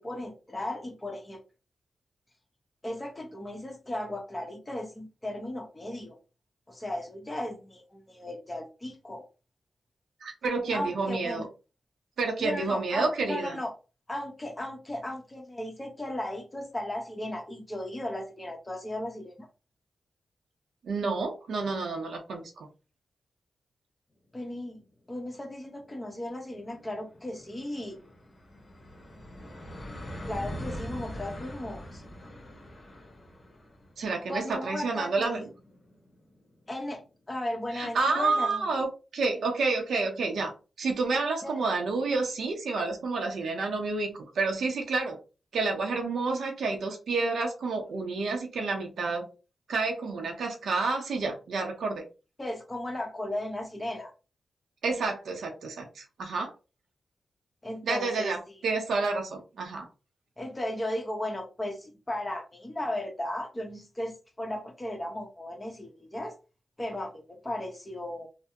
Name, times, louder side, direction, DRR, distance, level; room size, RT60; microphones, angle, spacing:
voice 1, 0.0-1.4 2.8-6.2 6.7-9.3 10.7-11.5 12.4-13.7 14.1-19.5 24.3-28.0 30.3-32.0 34.3-35.5 36.7-38.9 41.4-41.6 52.4-54.1 57.6-58.6 60.4-66.4 66.8-68.3, left 1 dB, 25° left, 3 dB, 1.0 m, -36 dB
voice 2, 10.2-11.5 12.2-13.6 20.8-22.7 34.0-35.5 37.7-38.9 39.1-40.5 40.8-45.2 45.5-49.3 49.7-52.0 54.8-56.5 57.8-59.9, right 3 dB, 80° right, 2 dB, 0.7 m, -29 dB
sound 1, 25.5-36.9, equal, 45° left, 1.1 m, -43 dB
3.3 x 2.1 x 2.8 m, 0.31 s
cardioid pair, 50°, 0 cm